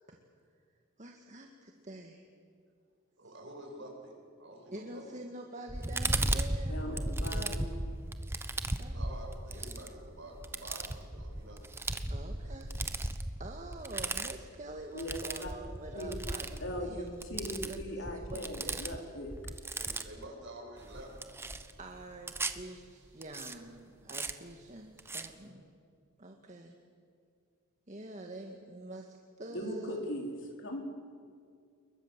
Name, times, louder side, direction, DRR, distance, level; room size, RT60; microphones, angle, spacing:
voice 1, 1.0-2.2 4.7-7.7 8.8-8.9 12.1-12.7 13.4-17.1 17.7-19.2 21.8-25.7 26.2-26.7 27.9-30.0, right 1 dB, 35° right, 2 dB, 1.8 m, -46 dB
voice 2, 3.2-4.1 4.4-5.0 8.9-11.6 19.7-21.2, right 1 dB, 60° right, 0 dB, 7.6 m, -48 dB
sound 1, 5.7-20.3 20.8-22.6 23.2-23.5 24.1-24.3 25.0-25.3, right 2 dB, 10° right, 1.0 m, -36 dB
voice 3, 6.7-7.7 14.9-15.6 15.9-16.2 16.6-19.3 29.5-30.3 30.6-30.8, equal, 60° left, 2 dB, 4.5 m, -39 dB
29.0 x 22.5 x 7.5 m, 2.2 s
head